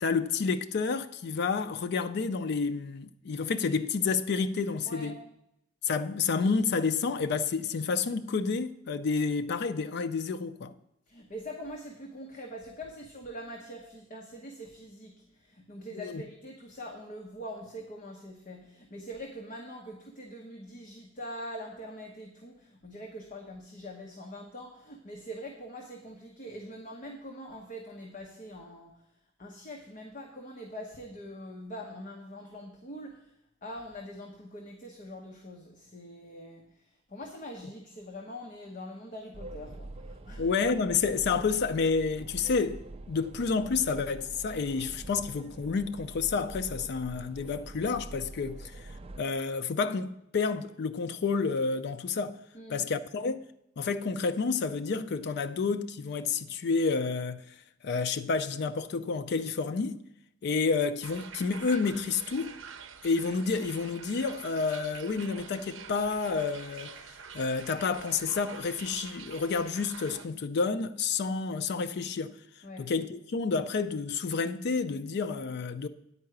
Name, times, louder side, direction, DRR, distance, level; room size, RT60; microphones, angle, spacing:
voice 1, 0.0-5.2 5.8-10.7 15.9-16.2 40.4-48.8 49.2-52.4 52.7-53.4 53.8-57.4 57.8-60.0 60.4-62.6 63.0-67.0 67.3-72.4 72.8-75.9, left 4 dB, 55° left, 0.4 m, -30 dB
voice 2, 11.1-29.0 29.4-33.3 33.6-40.5 52.5-52.9 72.6-72.9, equal, 40° left, 1.0 m, -43 dB
sound 1, 39.3-49.2, right 2 dB, 30° right, 0.4 m, -45 dB
sound 2, 61.0-70.3, right 6 dB, 75° right, 0.6 m, -46 dB
9.6 x 4.7 x 7.8 m
head